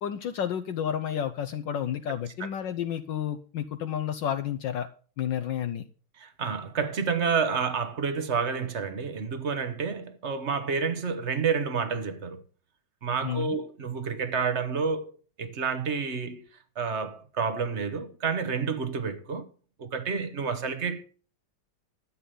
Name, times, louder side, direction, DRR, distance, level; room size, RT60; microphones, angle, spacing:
voice 1, 0.0-4.9 5.2-5.8 13.2-13.6, left 9 dB, 70° left, 1.4 m, -31 dB
voice 2, 6.2-12.4 13.0-15.1 15.4-16.4 16.8-19.5 19.8-21.0, right 5 dB, 40° right, 1.3 m, -29 dB
12.5 x 8.4 x 5.4 m
omnidirectional pair, 2.2 m